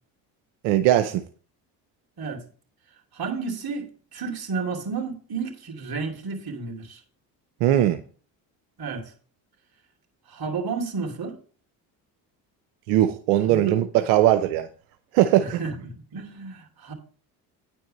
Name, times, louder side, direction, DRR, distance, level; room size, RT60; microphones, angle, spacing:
voice 1, 0.6-1.2 7.6-8.0 12.9-14.7 15.1-15.6, right 12 dB, 85° right, 0.8 m, -20 dB
voice 2, 2.9-7.0 8.8-9.1 10.3-11.4 13.4-13.8 15.4-16.9, right 4 dB, 50° right, 2.9 m, -32 dB
9.9 x 4.6 x 6.5 m
supercardioid pair, 70°, 47 cm